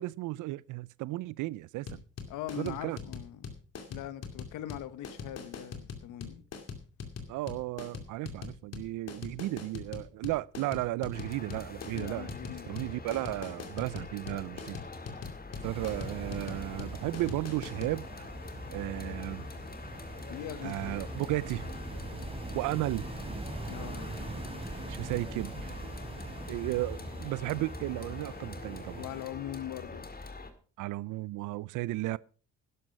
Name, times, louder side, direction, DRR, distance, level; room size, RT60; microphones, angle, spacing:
voice 1, 0.0-2.0 2.6-3.0 7.3-12.3 12.7-14.9 15.6-18.3 18.7-19.4 20.6-21.7 22.5-23.1 24.9-25.7 26.5-29.0 30.8-32.2, right 18 dB, 85° right, 0.5 m, -34 dB
sound 1, 1.9-18.0, left 5 dB, 55° left, 2.5 m, -42 dB
voice 2, 2.3-3.5 3.9-6.4 11.9-12.8 20.3-21.3 23.7-24.2 29.0-30.1, left 11 dB, 90° left, 1.1 m, -41 dB
sound 2, 11.1-30.5, left 3 dB, 30° left, 2.0 m, -44 dB
sound 3, 15.6-29.3, right 2 dB, 20° right, 3.6 m, -42 dB
11.5 x 11.0 x 5.2 m
cardioid pair, 90°, 30 cm